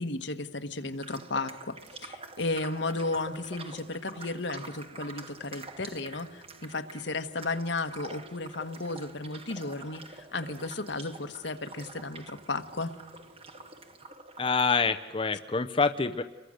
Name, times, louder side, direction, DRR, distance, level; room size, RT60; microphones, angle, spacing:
voice 1, 0.0-1.8 2.0-12.9, left 3 dB, 70° left, 9 dB, 1.4 m, -34 dB
sound 1, 1.0-14.8, right 3 dB, 30° right, 1.1 m, -47 dB
sound 2, 1.8-13.9, right 2 dB, 70° right, 6.9 m, -60 dB
voice 2, 14.4-16.2, left 4 dB, 30° left, 8 dB, 0.7 m, -26 dB
29.5 x 22.5 x 6.5 m, 1.3 s
head